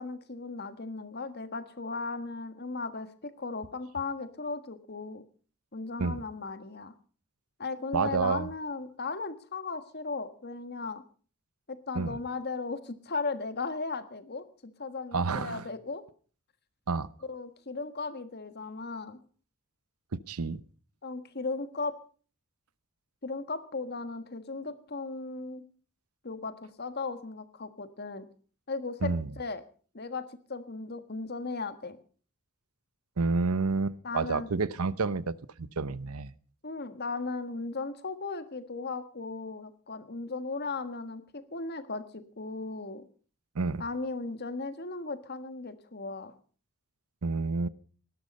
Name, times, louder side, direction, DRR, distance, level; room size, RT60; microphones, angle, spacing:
voice 1, 0.0-5.2 5.7-6.9 7.6-11.0 11.7-16.0 17.3-19.2 21.0-22.0 23.2-25.6 26.2-28.2 28.7-29.6 29.9-32.0 34.0-34.5 36.6-43.0 43.8-46.3, left 3 dB, 50° left, 1.6 m, -36 dB
voice 2, 7.9-8.5 11.9-12.2 15.1-15.7 16.9-17.1 20.1-20.6 29.0-29.3 33.2-36.3 43.5-43.8 47.2-47.7, right 4 dB, 85° right, 0.8 m, -29 dB
19.0 x 12.0 x 5.4 m
head